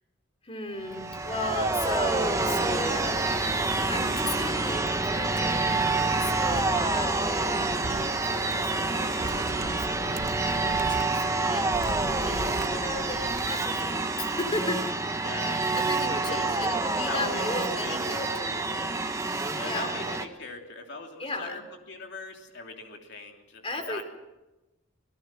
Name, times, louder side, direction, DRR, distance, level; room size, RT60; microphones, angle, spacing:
voice 1, 0.4-3.5 3.9-11.7 12.1-14.8 15.5-18.9 19.6-20.0 21.2-21.6 23.6-24.0, left 1 dB, 30° left, 7 dB, 3.3 m, -35 dB
sound 1, 0.8-20.3, right 3 dB, 15° right, 1.2 m, -28 dB
sound 2, 6.5-6.6 7.8-8.0 9.2-11.0 11.7-13.5, right 2 dB, 55° right, 0.8 m, -37 dB
voice 2, 15.2-15.7 16.2-16.6 17.0-18.0 19.5-21.6 21.9-24.0, left 3 dB, 60° left, 2 dB, 3.1 m, -39 dB
26.0 x 18.0 x 6.2 m, 1.0 s
head